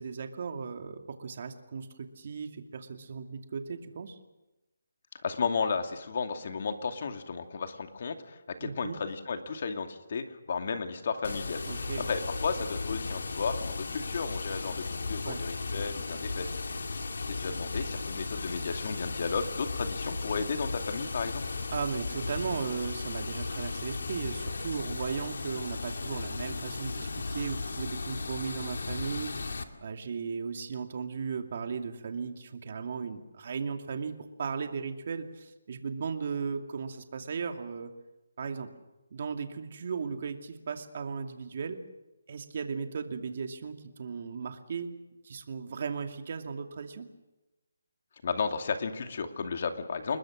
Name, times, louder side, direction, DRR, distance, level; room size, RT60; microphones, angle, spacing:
voice 1, 0.0-4.2 8.6-9.0 11.7-12.1 15.2-15.4 21.7-29.3 29.8-34.1 34.4-37.9 38.4-38.7 39.1-41.8 42.3-44.9 45.2-47.1, right 5 dB, 40° right, 5 dB, 2.5 m, -36 dB
voice 2, 5.2-17.0 17.3-21.4 48.2-50.2, left 5 dB, 45° left, 6 dB, 2.4 m, -34 dB
Water, 11.2-29.6, left 3 dB, 75° left, 2.3 m, -36 dB
29.5 x 20.5 x 6.5 m, 1.0 s
hypercardioid pair, 170°, 0 cm